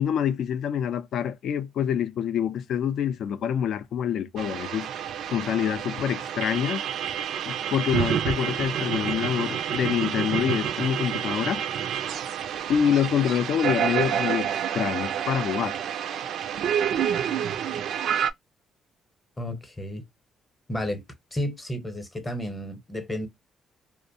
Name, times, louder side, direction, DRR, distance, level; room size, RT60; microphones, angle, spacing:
voice 1, 0.0-4.9 5.3-6.8 7.5-11.6 12.7-15.8, left 8 dB, 70° left, 0.4 m, -26 dB
sound 1, 4.4-18.3, right 9 dB, 70° right, 0.3 m, -28 dB
voice 2, 19.4-20.0 20.7-21.0 21.3-23.3, left 1 dB, 20° left, 0.8 m, -32 dB
2.5 x 2.0 x 2.7 m
cardioid pair, 90°, 0 cm